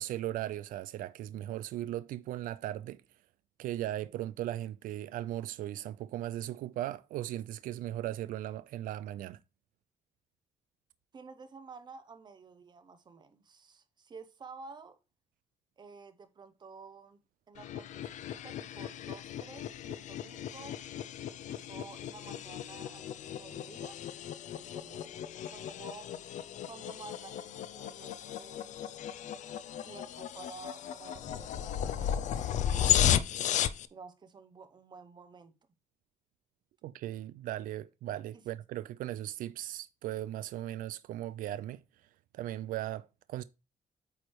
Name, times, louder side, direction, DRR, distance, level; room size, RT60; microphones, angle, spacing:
voice 1, 0.0-3.0 3.6-9.4 36.8-41.8 42.3-43.4, right 13 dB, 90° right, 0.4 m, -37 dB
voice 2, 11.1-15.0 15.8-17.2 17.5-20.8 21.2-24.0 24.5-26.1 26.6-28.8 29.8-33.0 33.9-35.5 38.3-38.4, right 4 dB, 30° right, 0.8 m, -51 dB
sound 1, 17.6-33.9, left 10 dB, 60° left, 0.5 m, -35 dB
8.6 x 3.2 x 4.6 m
cardioid pair, 140°, 14 cm